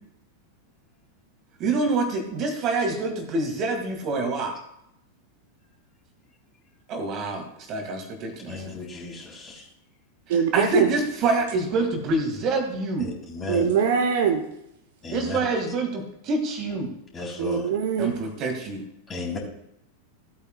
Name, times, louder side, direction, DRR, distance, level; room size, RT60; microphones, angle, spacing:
voice 1, 1.6-4.5 6.9-8.6 10.5-13.1 15.1-16.9 18.0-18.8, right 3 dB, 35° right, 4 dB, 2.0 m, -26 dB
voice 2, 8.5-9.7 13.0-13.7 15.0-15.4 17.1-17.7 19.1-19.4, left 3 dB, 20° left, -2 dB, 3.6 m, -34 dB
voice 3, 10.3-10.9 13.5-14.4 17.4-18.1, right 7 dB, 55° right, 6 dB, 1.1 m, -22 dB
16.5 x 8.6 x 2.3 m, 0.80 s
figure-of-eight pair, 90°, 0 cm